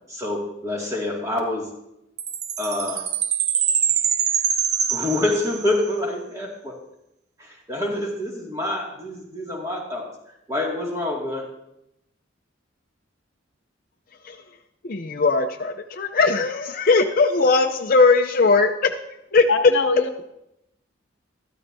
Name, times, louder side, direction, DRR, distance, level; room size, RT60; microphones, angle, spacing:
voice 1, 0.1-1.7 2.6-3.1 4.9-6.8 7.4-10.1 10.5-11.5, left 1 dB, 15° right, -2 dB, 2.1 m, -27 dB
Chime, 2.2-5.9, right 8 dB, 35° right, 0.4 m, -24 dB
voice 2, 14.8-18.9 19.3-19.4, left 4 dB, 45° left, 6 dB, 0.5 m, -19 dB
voice 3, 19.5-20.2, left 4 dB, 70° left, 6 dB, 0.8 m, -23 dB
13.0 x 12.5 x 2.7 m, 0.83 s
head